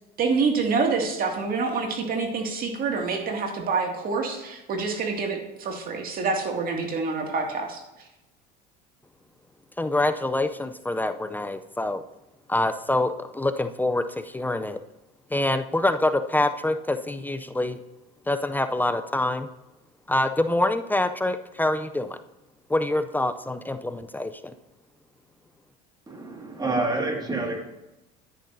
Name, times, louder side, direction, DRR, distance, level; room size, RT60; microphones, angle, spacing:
voice 1, 0.2-7.8, right 4 dB, 45° right, 2 dB, 2.2 m, -27 dB
voice 2, 9.8-12.0 12.5-14.8 15.3-17.8 18.3-19.5 20.1-22.2 22.7-24.3, left 1 dB, 10° left, 9 dB, 0.4 m, -25 dB
voice 3, 26.1-27.7, right 2 dB, 20° right, 1 dB, 2.0 m, -28 dB
10.0 x 9.9 x 2.7 m, 0.95 s
supercardioid pair, 95°, 21 cm